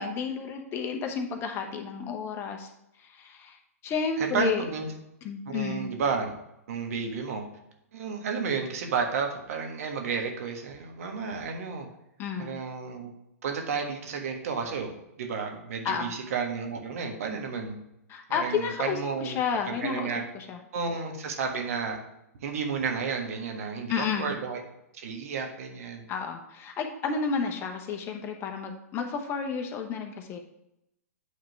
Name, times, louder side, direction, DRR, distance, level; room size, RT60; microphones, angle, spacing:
voice 1, 0.0-2.7 3.0-3.6 3.8-4.7 5.2-5.8 12.2-12.6 15.8-16.1 18.1-20.6 23.9-24.3 26.1-30.4, left 6 dB, 30° left, 3 dB, 1.0 m, -31 dB
voice 2, 4.2-4.9 5.5-6.3 6.7-7.4 7.9-11.9 12.4-13.1 13.4-14.9 15.2-17.8 18.3-19.4 19.7-20.2 20.7-22.0 22.4-24.6 24.9-26.1, right 5 dB, 65° right, 3 dB, 1.4 m, -32 dB
8.5 x 3.7 x 4.5 m, 0.84 s
hypercardioid pair, 125°, 8 cm